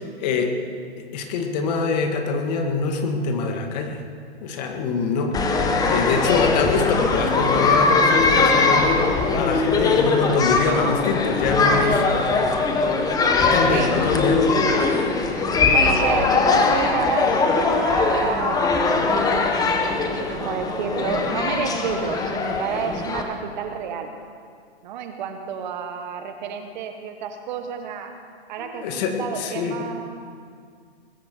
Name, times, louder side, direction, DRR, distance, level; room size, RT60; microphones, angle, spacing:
voice 1, 0.2-0.6 1.1-4.0 4.4-5.4 5.9-9.1 9.3-12.0 13.3-14.5 28.6-29.8, left 4 dB, 40° left, 4 dB, 2.1 m, -24 dB
sound 1, 5.3-23.2, left 3 dB, 10° left, 1.1 m, -21 dB
voice 2, 14.3-14.7 15.7-18.9 19.7-24.1 24.8-28.1 28.5-30.3, right 7 dB, 45° right, 6 dB, 1.6 m, -30 dB
21.5 x 13.0 x 4.6 m, 2.1 s
hypercardioid pair, 140°, 32 cm